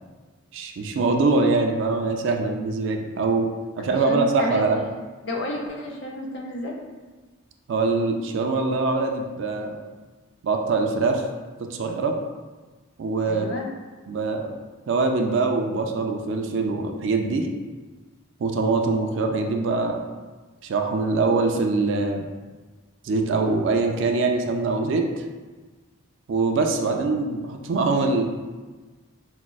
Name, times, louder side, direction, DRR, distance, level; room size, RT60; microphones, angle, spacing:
voice 1, 0.5-3.5 3.8-4.8 7.7-9.8 10.4-11.2 11.7-12.1 13.0-13.5 14.1-14.5 14.9-17.5 18.4-20.0 20.6-22.3 23.0-25.1 26.3-28.2, right 3 dB, 65° right, 3 dB, 0.3 m, -23 dB
voice 2, 3.8-4.7 5.2-6.8 13.3-13.7, left 1 dB, 60° left, 0 dB, 0.5 m, -31 dB
5.0 x 2.0 x 2.3 m, 1.3 s
head